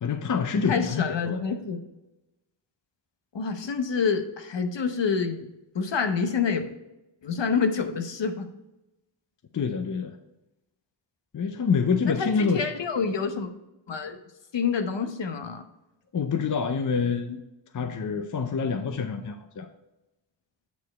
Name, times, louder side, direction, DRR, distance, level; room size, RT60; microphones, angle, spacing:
voice 1, 0.0-1.4 9.5-10.2 11.3-12.7 16.1-17.4 17.7-19.7, left 5 dB, 45° left, 8 dB, 0.5 m, -26 dB
voice 2, 0.7-1.8 3.3-5.5 5.7-6.7 7.2-8.5 12.2-13.5 13.9-14.2 14.5-15.6, left 5 dB, 70° left, 7 dB, 0.9 m, -27 dB
8.4 x 4.4 x 4.3 m, 0.97 s
wide cardioid pair, 100°, 46 cm